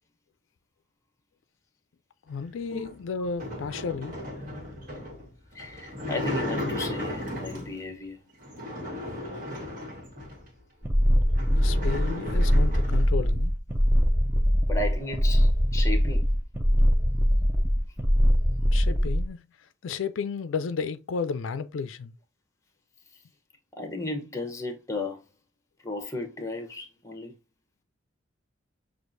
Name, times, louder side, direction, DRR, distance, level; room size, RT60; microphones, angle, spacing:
voice 1, 2.3-4.2 11.6-13.5 18.6-22.1, left 5 dB, 85° left, 0.4 m, -33 dB
sound 1, 2.7-7.9 8.4-10.5 10.9-11.0 11.3-13.1, left 1 dB, 45° right, 1.5 m, -35 dB
voice 2, 5.5-8.2 14.7-16.3 23.8-25.2 25.8-27.3, left 2 dB, 15° left, 0.9 m, -34 dB
sound 2, 10.8-19.3, equal, 10° right, 0.5 m, -22 dB
6.3 x 2.5 x 2.6 m
head